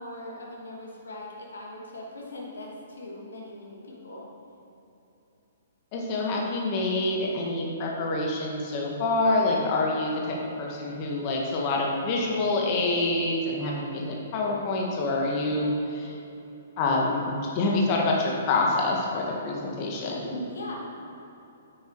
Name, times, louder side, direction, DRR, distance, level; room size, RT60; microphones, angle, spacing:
voice 1, 0.0-4.3 20.5-20.9, left 1 dB, 65° left, -3 dB, 2.5 m, -40 dB
voice 2, 5.9-16.2 16.8-20.4, left 2 dB, 35° left, -2 dB, 1.9 m, -26 dB
9.8 x 8.5 x 4.9 m, 2.9 s
figure-of-eight pair, 120°, 0 cm